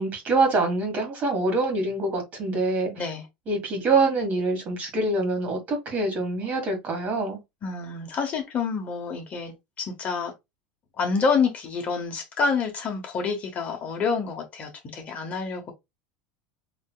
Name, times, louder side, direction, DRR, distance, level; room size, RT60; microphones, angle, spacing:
voice 1, 0.0-2.9 3.5-7.4, right 3 dB, 35° right, 1.5 m, -25 dB
voice 2, 7.6-10.3 11.0-15.7, left 5 dB, 30° left, 1.1 m, -28 dB
4.4 x 2.8 x 2.2 m
supercardioid pair, 120°, 5 cm